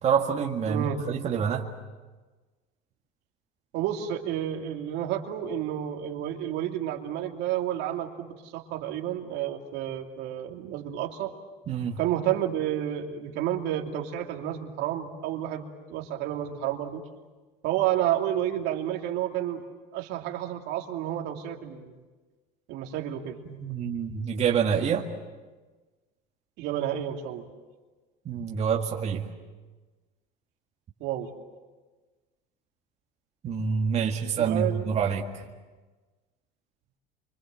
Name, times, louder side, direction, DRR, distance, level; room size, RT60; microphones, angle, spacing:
voice 1, 0.0-1.7 11.7-12.0 23.5-25.1 28.3-29.3 33.4-35.4, right 7 dB, 35° right, 0 dB, 2.0 m, -27 dB
voice 2, 0.7-1.0 3.7-11.3 12.0-17.0 17.6-19.6 19.9-21.9 22.7-23.4 26.6-27.5 31.0-31.3 34.4-34.9, right 11 dB, 70° right, 3 dB, 2.7 m, -30 dB
27.5 x 25.5 x 7.7 m, 1.3 s
cardioid pair, 125°, 18 cm